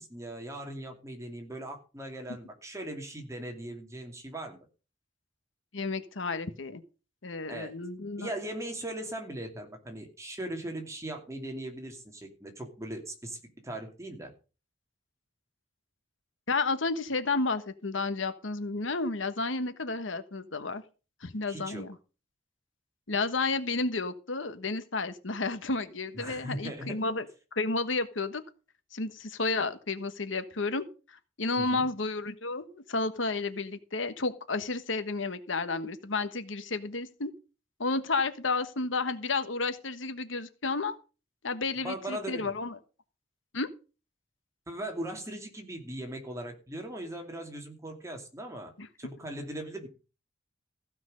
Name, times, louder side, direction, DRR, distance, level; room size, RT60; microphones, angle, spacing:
voice 1, 0.0-4.6 7.5-7.7 8.2-13.4 13.6-14.3 21.5-21.8 26.1-27.0 31.6-31.9 41.8-42.5 44.7-48.7 49.0-49.9, right 1 dB, 15° right, 3 dB, 2.7 m, -39 dB
voice 2, 5.7-6.8 7.2-8.3 16.5-20.8 21.2-21.9 23.1-27.2 27.5-28.4 28.9-30.8 31.4-37.3 37.8-41.0 41.4-42.7 43.5-43.7 48.8-48.9, left 3 dB, 80° left, 10 dB, 1.3 m, -31 dB
15.0 x 6.1 x 6.5 m, 0.34 s
head